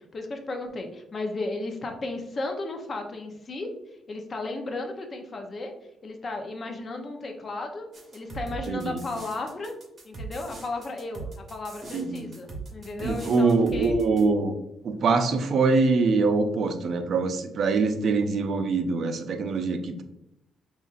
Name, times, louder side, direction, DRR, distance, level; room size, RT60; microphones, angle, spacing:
voice 1, 0.0-3.7 4.1-5.7 6.0-7.9 8.1-9.7 10.0-14.0, left 2 dB, 40° left, 4 dB, 0.7 m, -34 dB
sound 1, 7.9-14.2, right 3 dB, 40° right, 1.3 m, -40 dB
voice 2, 8.7-9.0 11.9-12.3 13.0-14.5 14.8-20.0, right 4 dB, 60° right, 8 dB, 0.5 m, -24 dB
5.3 x 2.5 x 2.5 m, 0.85 s
cardioid pair, 90°, 0 cm